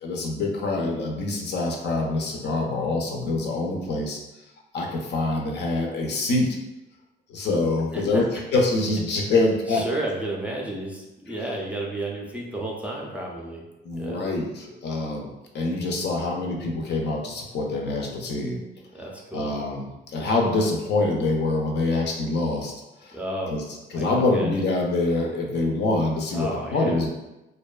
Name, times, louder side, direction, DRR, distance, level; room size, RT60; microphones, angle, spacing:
voice 1, 0.0-4.2 4.7-6.6 7.3-8.2 8.5-9.9 11.3-11.4 13.8-18.6 19.0-19.1 19.3-22.7 23.0-23.2 23.5-23.6 23.9-27.1, left 2 dB, 60° left, 0 dB, 0.5 m, -25 dB
voice 2, 9.7-13.6 14.0-14.3 18.9-19.5 23.1-23.5 23.9-24.7 26.3-27.0, right 1 dB, 5° right, -2 dB, 0.4 m, -32 dB
2.5 x 2.2 x 2.3 m, 0.99 s
cardioid pair, 90°, 20 cm